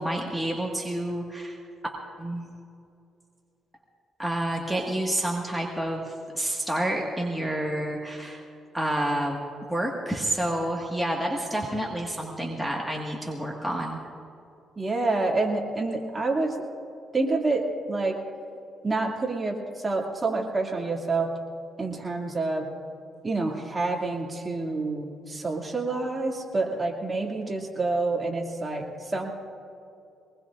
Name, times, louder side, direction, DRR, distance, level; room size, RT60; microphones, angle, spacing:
voice 1, 0.0-1.6 2.2-2.4 4.2-8.4 8.7-9.4 9.7-14.0, right 1 dB, ahead, -2 dB, 1.7 m, -29 dB
voice 2, 14.8-16.7 17.1-18.2 18.8-21.3 21.8-22.7 23.2-29.3, right 3 dB, 25° right, 0 dB, 2.4 m, -28 dB
23.0 x 20.0 x 2.5 m, 2.6 s
cardioid pair, 90°, 0 cm